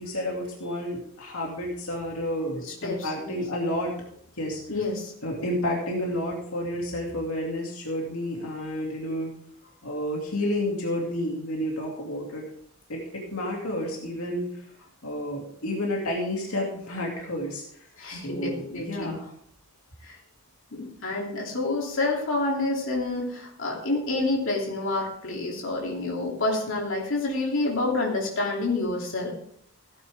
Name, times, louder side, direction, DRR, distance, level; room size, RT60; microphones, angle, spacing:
voice 1, 0.0-3.9 4.4-4.6 5.2-9.3 9.8-12.5 12.9-14.5 15.0-17.6 18.1-19.3, left 1 dB, 85° left, -1 dB, 2.5 m, -30 dB
voice 2, 2.6-3.4 4.7-5.1 18.0-19.1 20.0-20.2 20.7-29.3, left 2 dB, 60° left, -1 dB, 2.9 m, -28 dB
16.0 x 9.1 x 3.5 m, 0.65 s
head